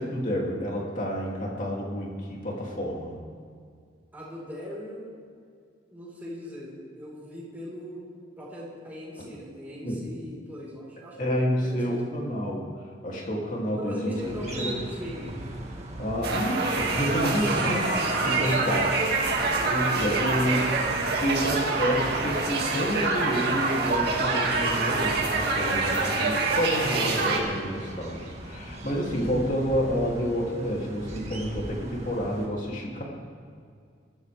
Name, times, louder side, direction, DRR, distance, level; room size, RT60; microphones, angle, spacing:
voice 1, 0.0-3.2 9.8-10.0 11.2-12.7 13.0-14.2 14.4-14.8 16.0-18.8 19.6-20.7 21.2-33.0, equal, 40° left, -2 dB, 2.9 m, -29 dB
voice 2, 4.1-5.2 5.9-8.0 8.4-12.1 13.8-15.3 18.3-20.9, equal, 10° right, -6 dB, 4.7 m, -39 dB
sound 1, 14.2-32.5, right 1 dB, 35° right, 1.9 m, -40 dB
sound 2, 16.2-27.4, right 3 dB, 55° right, 2.4 m, -26 dB
22.5 x 13.5 x 3.6 m, 2.2 s
head